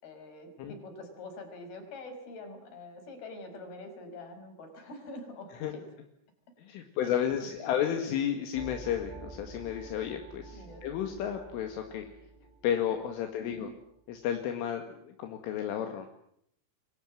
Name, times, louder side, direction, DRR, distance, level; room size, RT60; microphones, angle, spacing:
voice 1, 0.0-5.8 7.0-8.0 10.5-10.9 13.4-13.7, left 2 dB, 50° left, 5 dB, 7.2 m, -45 dB
voice 2, 6.6-12.1 12.6-13.7 14.1-16.1, left 9 dB, 75° left, 5 dB, 4.5 m, -32 dB
sound 1, 8.5-13.8, right 4 dB, 75° right, 7.3 m, -49 dB
28.0 x 24.0 x 7.7 m, 0.71 s
omnidirectional pair, 5.8 m